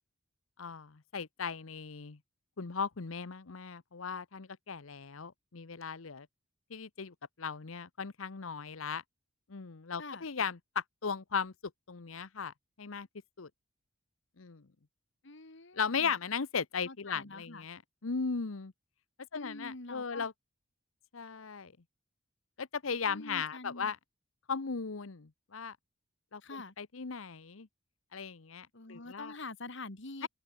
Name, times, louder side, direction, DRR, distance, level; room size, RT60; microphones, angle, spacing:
voice 1, 0.6-2.2 2.6-6.3 6.7-9.0 9.5-11.5 11.9-13.1 13.4-13.5 14.4-14.7 15.7-18.7 19.3-20.3 21.1-21.7 22.6-24.0 24.5-25.8 26.3-26.4 26.8-27.7 28.1-29.4 30.2-30.3, left 5 dB, 80° left, 0.9 m, -37 dB
voice 2, 15.2-16.1 16.8-17.6 19.3-20.3 23.1-23.9 26.4-26.7 28.7-30.3, left 3 dB, 65° left, 2.3 m, -46 dB
open air
head